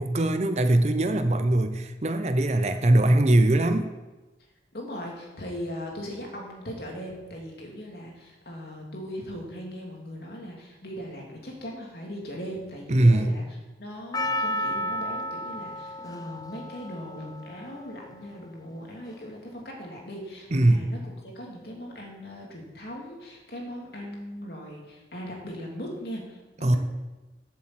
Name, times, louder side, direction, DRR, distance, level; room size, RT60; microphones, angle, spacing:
voice 1, 0.0-3.9 12.9-13.3 20.5-20.9 26.6-26.8, right 1 dB, 40° right, 9 dB, 0.7 m, -21 dB
voice 2, 4.7-26.8, equal, 60° left, -1 dB, 2.7 m, -39 dB
Percussion, 14.1-18.5 19.1-19.2, equal, 20° left, 0.4 m, -32 dB
8.3 x 7.4 x 7.8 m, 1.1 s
head